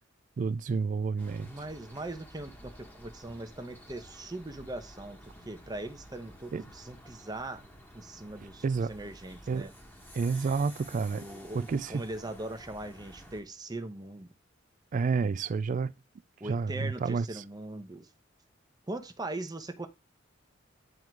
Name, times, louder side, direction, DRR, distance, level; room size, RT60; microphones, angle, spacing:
voice 1, 0.4-1.5 6.5-6.6 8.6-8.9 9.5-9.7 10.1-11.2 11.5-12.0 14.9-15.9 16.4-17.3, right 5 dB, 40° right, 0.3 m, -29 dB
sound 1, 1.2-13.4, equal, 10° left, 1.4 m, -51 dB
voice 2, 1.4-5.2 5.4-7.6 7.9-9.7 11.1-14.3 16.4-18.1 18.9-19.9, right 2 dB, 20° right, 0.9 m, -40 dB
9.2 x 3.7 x 4.6 m
head